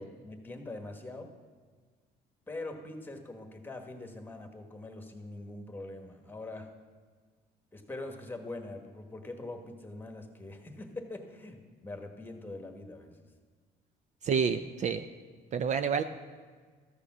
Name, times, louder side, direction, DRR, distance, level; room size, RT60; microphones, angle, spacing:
voice 1, 0.0-1.3 2.5-6.7 7.7-13.2, left 2 dB, 10° left, 5 dB, 1.3 m, -43 dB
voice 2, 14.2-15.0 15.5-16.0, right 6 dB, 45° right, 9 dB, 0.5 m, -28 dB
14.0 x 6.7 x 6.1 m, 1.5 s
cardioid pair, 110°, 17 cm